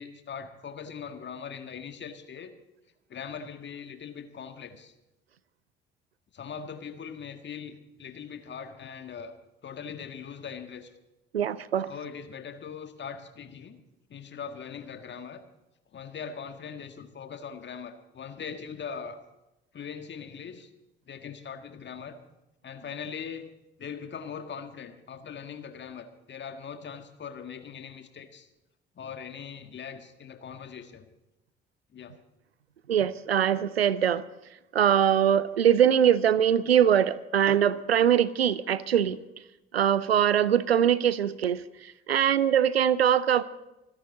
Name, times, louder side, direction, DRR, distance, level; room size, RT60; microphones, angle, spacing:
voice 1, 0.0-2.5 3.1-4.9 6.3-9.3 9.6-10.9 11.9-13.8 14.1-15.4 15.9-19.2 19.7-20.7 21.0-22.1 22.6-23.5 23.8-28.5 28.9-31.1 31.9-32.1, left 6 dB, 35° left, 7 dB, 1.7 m, -41 dB
voice 2, 11.3-11.9 32.9-34.2 34.7-39.2 39.7-43.4, right 9 dB, 85° right, 19 dB, 0.5 m, -22 dB
27.0 x 10.5 x 4.0 m, 0.94 s
figure-of-eight pair, 50°, 30 cm